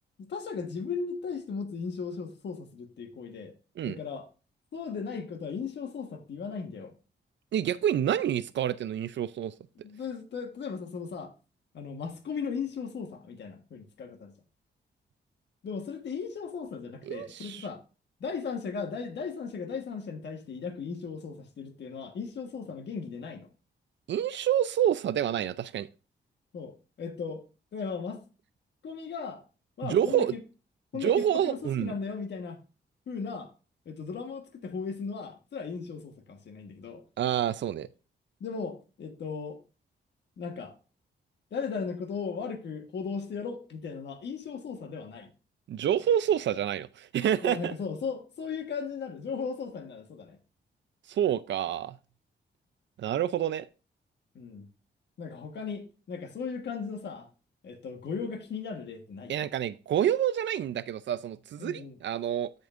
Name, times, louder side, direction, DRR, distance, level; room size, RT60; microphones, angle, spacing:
voice 1, 0.2-3.5 3.8-4.3 4.7-6.9 9.8-11.3 11.7-14.3 15.6-17.8 18.2-23.5 26.5-27.4 27.7-28.2 28.8-29.4 29.8-30.4 30.9-32.6 33.1-33.5 33.8-37.0 38.4-39.6 40.4-40.7 41.5-45.3 47.4-50.4 54.3-54.7 55.2-57.3 57.6-59.3 61.6-62.0, left 5 dB, 65° left, 1.4 m, -37 dB
voice 2, 7.5-9.5 17.1-17.6 24.1-25.9 29.8-30.3 30.9-31.9 37.2-37.9 45.7-47.7 51.1-51.9 53.0-53.7 59.3-62.5, right 10 dB, 75° right, 0.5 m, -28 dB
14.0 x 5.3 x 2.5 m
wide cardioid pair, 140°, 19 cm